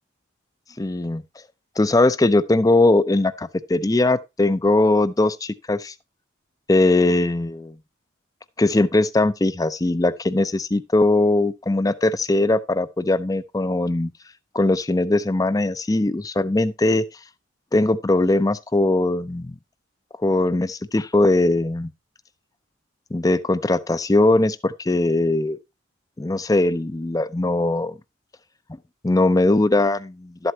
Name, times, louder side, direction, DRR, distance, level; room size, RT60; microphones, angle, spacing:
voice 1, 0.8-1.2 1.8-5.9 6.7-7.8 8.6-14.1 14.5-17.0 17.7-19.6 20.2-21.9 23.1-25.6 26.2-28.0 29.0-30.5, left 2 dB, 20° left, 0.5 m, -20 dB
12.0 x 7.9 x 2.8 m
head